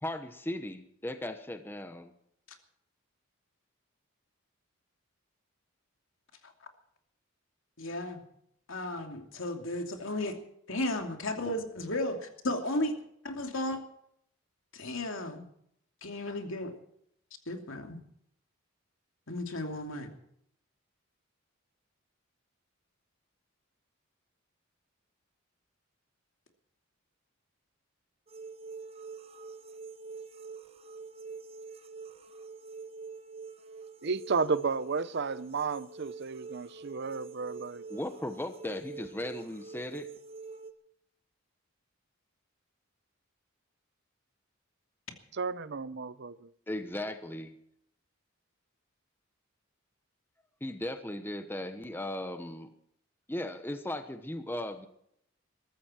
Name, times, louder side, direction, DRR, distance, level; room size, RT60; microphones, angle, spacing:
voice 1, 0.0-2.1 37.9-40.1 46.7-47.5 50.6-52.7 53.3-54.9, left 1 dB, 10° left, 1.0 m, -37 dB
voice 2, 7.8-8.2 8.7-10.4 10.7-12.9 13.2-13.8 14.7-15.5 16.0-16.7 17.5-18.0 19.3-20.1, left 1 dB, 70° left, 2.7 m, -34 dB
sound 1, 28.3-40.7, right 4 dB, 30° right, 1.1 m, -46 dB
voice 3, 34.0-37.8 45.3-46.5, right 4 dB, 55° right, 0.7 m, -33 dB
22.0 x 13.5 x 4.4 m
head